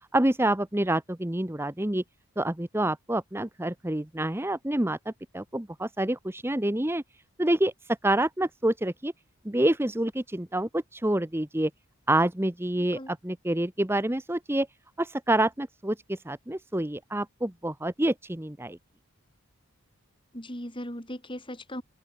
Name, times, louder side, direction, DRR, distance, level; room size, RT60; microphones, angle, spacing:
voice 1, 0.1-2.0 2.4-5.0 5.3-7.0 7.4-7.7 8.0-9.1 9.4-11.7 12.1-14.7 15.0-18.8, right 1 dB, 10° right, 0.9 m, -27 dB
voice 2, 12.8-13.1 20.3-21.8, equal, 20° left, 7.7 m, -38 dB
open air
head